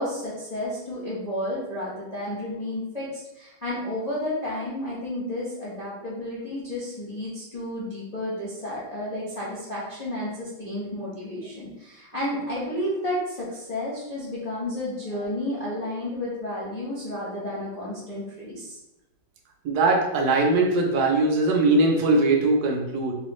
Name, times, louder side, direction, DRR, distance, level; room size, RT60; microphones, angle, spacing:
voice 1, 0.0-18.8, left 1 dB, 65° left, -8 dB, 0.3 m, -31 dB
voice 2, 19.6-23.1, right 2 dB, 75° right, 0 dB, 0.8 m, -21 dB
3.3 x 3.1 x 3.0 m, 0.97 s
omnidirectional pair, 2.3 m